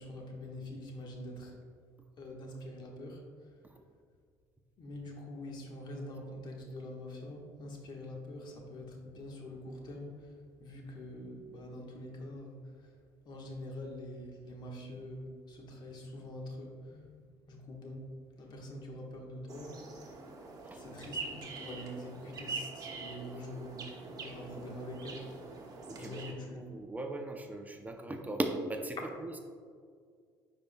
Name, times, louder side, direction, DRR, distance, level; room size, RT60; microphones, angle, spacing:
voice 1, 0.0-1.5 2.2-3.6 4.8-12.9 13.2-18.0 18.4-20.2 20.7-25.3 25.8-26.6, left 1 dB, 50° left, 1 dB, 1.3 m, -45 dB
sound 1, 19.5-26.3, right 4 dB, 40° right, 1.1 m, -44 dB
voice 2, 25.9-29.4, right 2 dB, 15° right, 4 dB, 0.6 m, -38 dB
9.7 x 4.5 x 2.2 m, 2.1 s
supercardioid pair, 70°, 9 cm